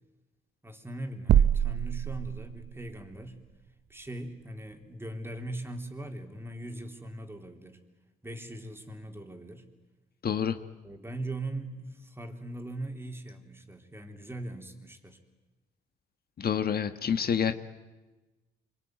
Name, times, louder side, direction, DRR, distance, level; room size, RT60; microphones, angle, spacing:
voice 1, 0.6-3.4 3.9-7.8 8.2-9.6 10.8-15.2, right 1 dB, 10° right, 4 dB, 3.7 m, -40 dB
sound 1, 1.3-2.9, right 9 dB, 70° right, 0.8 m, -25 dB
voice 2, 10.2-10.6 16.4-17.5, left 8 dB, 50° left, 9 dB, 1.4 m, -27 dB
26.0 x 24.0 x 9.4 m, 1.2 s
cardioid pair, 90°, 20 cm